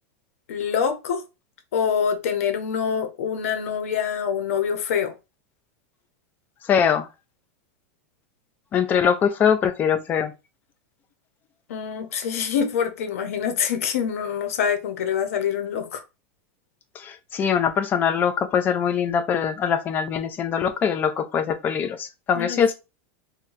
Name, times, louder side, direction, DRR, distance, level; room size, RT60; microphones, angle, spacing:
voice 1, 0.5-1.2 1.7-5.1 11.7-16.0 22.3-22.6, left 7 dB, 90° left, 0.8 m, -25 dB
voice 2, 6.7-7.1 8.7-10.3 17.0-22.7, left 7 dB, 25° left, 0.5 m, -22 dB
2.7 x 2.2 x 4.0 m
supercardioid pair, 155°, 8 cm